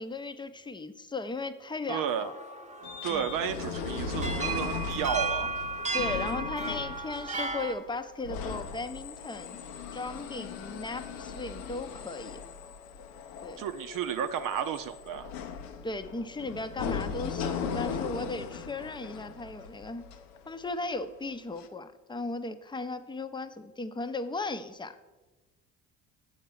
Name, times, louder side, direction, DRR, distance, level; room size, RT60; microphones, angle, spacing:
voice 1, 0.0-2.4 3.1-3.3 5.9-9.6 9.9-12.4 13.4-13.6 15.8-20.0 20.5-25.0, left 3 dB, 15° left, 10 dB, 0.6 m, -36 dB
sound 1, 1.9-7.8, right 3 dB, 20° right, 0.9 m, -35 dB
voice 2, 1.9-2.3 3.0-5.5 13.6-15.3, right 8 dB, 65° right, 8 dB, 0.6 m, -32 dB
sound 2, 2.8-21.0 21.6-21.7, left 5 dB, 85° left, 0.8 m, -38 dB
7.2 x 4.6 x 6.9 m, 1.2 s
supercardioid pair, 70°, 35 cm